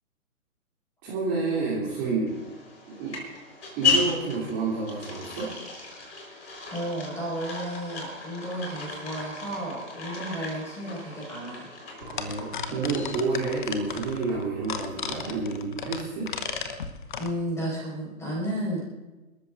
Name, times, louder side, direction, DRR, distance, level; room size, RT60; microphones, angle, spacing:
voice 1, 1.0-2.3 2.8-3.1 3.8-5.5 12.0-16.3, right 4 dB, 20° right, -8 dB, 3.0 m, -29 dB
sound 1, 2.3-13.5, left 5 dB, 55° left, 4.4 m, -34 dB
voice 2, 6.7-11.7 12.1-12.4 17.2-18.8, right 1 dB, 5° left, -4 dB, 5.2 m, -33 dB
sound 2, 12.0-17.3, left 6 dB, 35° left, 1.0 m, -35 dB
29.0 x 13.5 x 2.6 m, 1.1 s
figure-of-eight pair, 130°, 42 cm